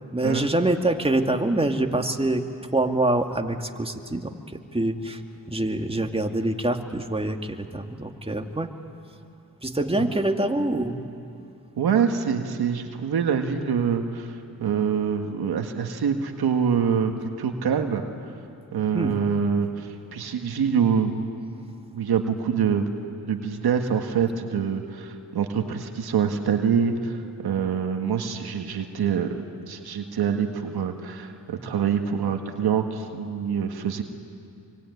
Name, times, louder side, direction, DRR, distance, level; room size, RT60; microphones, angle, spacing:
voice 1, 0.1-2.4 2.7-5.2 5.5-8.7 9.6-11.0 18.9-19.2, right 1 dB, 15° right, 4 dB, 2.4 m, -25 dB
voice 2, 11.8-18.0 18.7-21.3 21.9-22.9 23.2-29.4 29.7-34.0, right 7 dB, 85° right, 5 dB, 1.8 m, -25 dB
25.0 x 24.5 x 9.6 m, 2.5 s
supercardioid pair, 40°, 37 cm